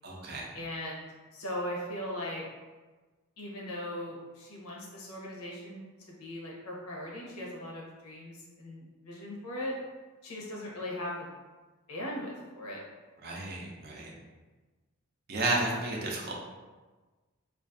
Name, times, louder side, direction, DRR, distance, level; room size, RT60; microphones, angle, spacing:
voice 1, 0.0-0.5 13.2-14.1 15.3-16.3, right 2 dB, 45° right, -2 dB, 0.4 m, -32 dB
voice 2, 0.5-1.1 1.3-2.4 3.4-5.8 6.1-9.8 10.2-11.3 11.9-12.8, left 1 dB, 90° left, -3 dB, 0.7 m, -39 dB
2.4 x 2.4 x 2.5 m, 1.3 s
head